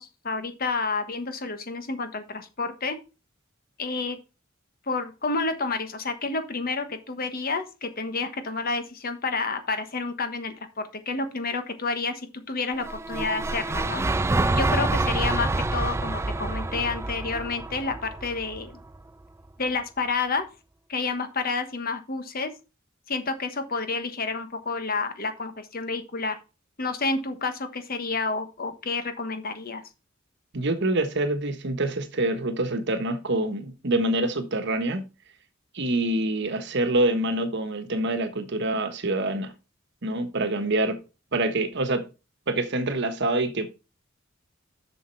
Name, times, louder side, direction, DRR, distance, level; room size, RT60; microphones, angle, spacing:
voice 1, 0.0-3.0 3.8-4.2 4.9-14.0 14.5-18.8 19.6-20.4 20.9-22.5 23.1-26.4 26.8-29.8, left 4 dB, 50° left, 1.2 m, -29 dB
sound 1, 12.8-19.0, right 2 dB, 15° right, 0.3 m, -27 dB
voice 2, 30.5-35.0 35.7-39.5 40.0-41.0 41.3-42.1 42.5-43.7, right 2 dB, 60° right, 1.2 m, -26 dB
7.3 x 6.3 x 4.6 m
head